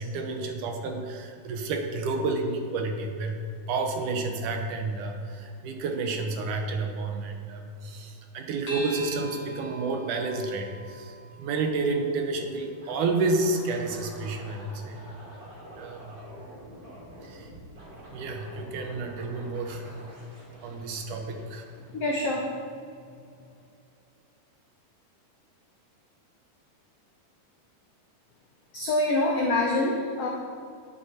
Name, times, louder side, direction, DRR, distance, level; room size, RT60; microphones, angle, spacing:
voice 1, 0.0-3.4 3.7-15.0 15.8-16.2 17.2-17.5 18.1-19.8 20.6-21.7, right 3 dB, 70° right, 4 dB, 2.2 m, -30 dB
sound 1, 8.7-13.4, right 1 dB, 40° left, 2.1 m, -43 dB
sound 2, 12.8-22.3, equal, 30° right, 2.9 m, -47 dB
voice 2, 21.9-22.6 28.7-30.3, left 2 dB, 90° left, -1 dB, 1.3 m, -25 dB
11.0 x 10.5 x 4.3 m, 2.4 s
omnidirectional pair, 4.3 m